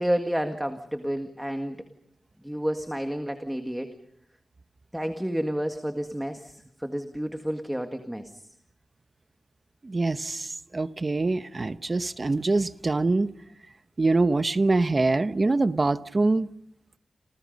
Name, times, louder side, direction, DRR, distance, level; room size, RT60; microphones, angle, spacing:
voice 1, 0.0-1.8 2.4-3.9 4.9-8.4, equal, 5° right, 1.7 m, -30 dB
voice 2, 9.8-13.3 14.0-16.5, right 3 dB, 30° right, 1.0 m, -24 dB
29.5 x 28.0 x 5.3 m
wide cardioid pair, 175°, 0 cm